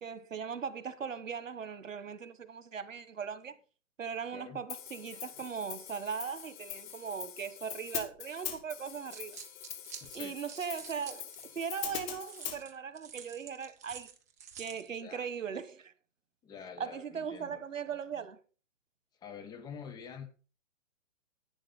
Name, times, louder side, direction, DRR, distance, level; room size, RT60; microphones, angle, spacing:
voice 1, 0.0-3.6 4.0-9.4 10.1-11.3 11.5-14.1 14.6-15.9 16.8-18.4, right 7 dB, 85° right, 1.3 m, -39 dB
Hi-hat, 4.7-12.6, left 10 dB, 35° left, 1.8 m, -43 dB
sound 1, 8.8-11.6 12.2-14.9, right 8 dB, 15° right, 0.4 m, -49 dB
voice 2, 10.0-10.4 15.0-15.2 16.4-17.6 19.2-20.3, left 6 dB, 10° left, 0.7 m, -47 dB
10.5 x 9.1 x 4.0 m
hypercardioid pair, 140°, 38 cm